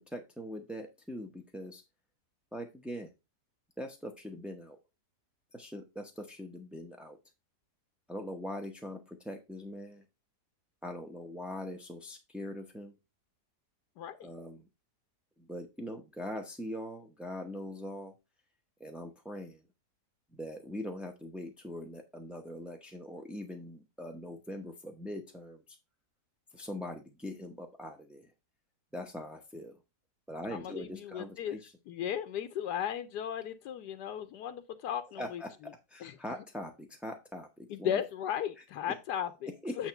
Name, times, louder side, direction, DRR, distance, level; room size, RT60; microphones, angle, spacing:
voice 1, 0.1-1.8 2.5-3.1 3.8-4.8 5.5-7.2 8.1-10.0 10.8-13.0 14.2-14.7 15.4-18.1 18.8-19.6 20.3-25.8 26.5-28.3 28.9-29.8 30.3-31.7 35.2-38.0 38.6-39.0 39.5-39.8, left 1 dB, ahead, 0.5 m, -42 dB
voice 2, 14.0-14.3 30.5-31.6 31.9-35.4 36.0-36.1 37.7-39.3 39.8-39.9, left 9 dB, 85° left, 1.3 m, -35 dB
8.9 x 3.1 x 5.8 m
omnidirectional pair, 1.7 m